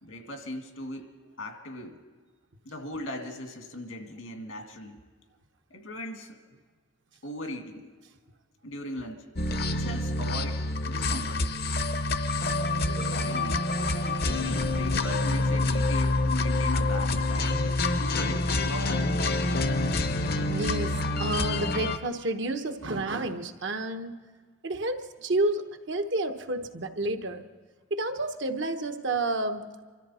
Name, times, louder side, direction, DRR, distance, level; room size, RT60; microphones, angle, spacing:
voice 1, 0.0-2.0 2.7-5.0 5.7-6.4 7.2-7.9 8.6-9.3 9.7-11.4 12.8-13.6 14.2-17.6 17.9-19.2, left 1 dB, 85° left, 4 dB, 2.0 m, -39 dB
sound 1, 9.4-22.0, left 2 dB, 50° left, 0.7 m, -27 dB
voice 2, 12.8-14.7 20.3-24.1 24.6-27.4 27.9-29.9, right 2 dB, 65° right, 6 dB, 1.0 m, -31 dB
25.5 x 13.5 x 4.3 m, 1.5 s
head